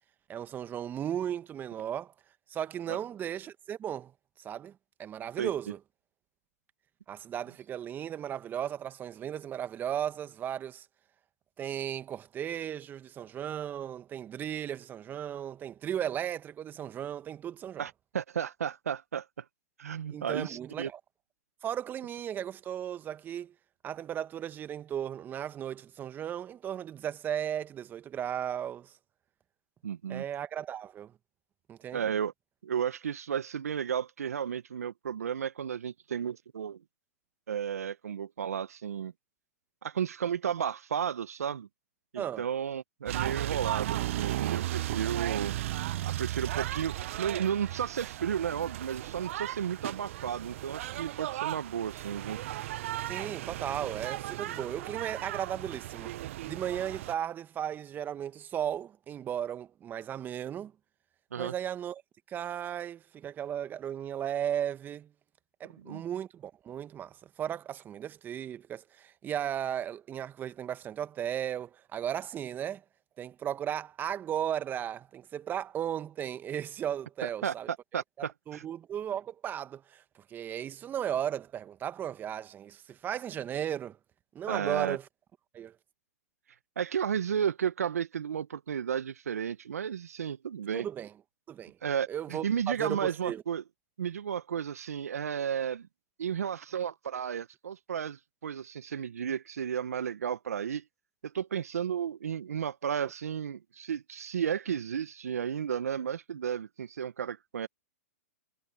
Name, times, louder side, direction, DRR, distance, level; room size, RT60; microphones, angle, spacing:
voice 1, 0.3-2.1 2.5-4.1 4.4-5.8 7.1-10.9 11.6-17.8 20.1-21.0 21.6-23.5 23.8-28.9 30.1-31.1 31.7-32.0 42.2-42.4 53.1-56.1 56.4-60.7 61.4-62.0 62.3-65.1 65.6-72.8 73.2-77.7 78.5-84.0 84.3-85.1 85.5-85.7 90.7-91.1 91.5-91.8 92.1-93.4, right 10 dB, 25° right, 1.5 m, -36 dB
voice 2, 17.8-19.2 19.8-20.9 29.8-30.2 31.9-32.3 32.6-36.8 37.5-39.1 39.8-41.7 42.1-45.5 46.0-52.4 61.3-61.5 65.8-66.0 77.2-77.5 77.9-78.6 84.5-85.0 86.8-90.9 91.8-93.6 94.0-95.9 96.2-100.8 101.2-107.7, right 8 dB, 75° right, 1.2 m, -33 dB
sound 1, 43.1-57.1, right 14 dB, 55° right, 0.8 m, -35 dB
hypercardioid pair, 115°, 8 cm